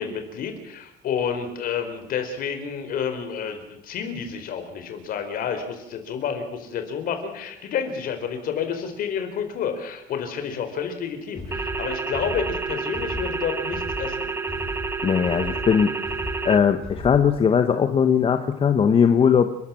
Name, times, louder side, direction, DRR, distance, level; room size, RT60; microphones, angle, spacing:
voice 1, 0.0-14.2, left 7 dB, 55° left, 7 dB, 4.3 m, -30 dB
sound 1, 11.3-17.4, left 1 dB, 5° left, 5.8 m, -36 dB
sound 2, 11.5-16.6, right 4 dB, 15° right, 0.8 m, -29 dB
voice 2, 15.0-15.9 16.4-19.5, left 7 dB, 30° left, 8 dB, 1.1 m, -19 dB
29.5 x 13.5 x 7.6 m, 0.83 s
cardioid pair, 160°, 18 cm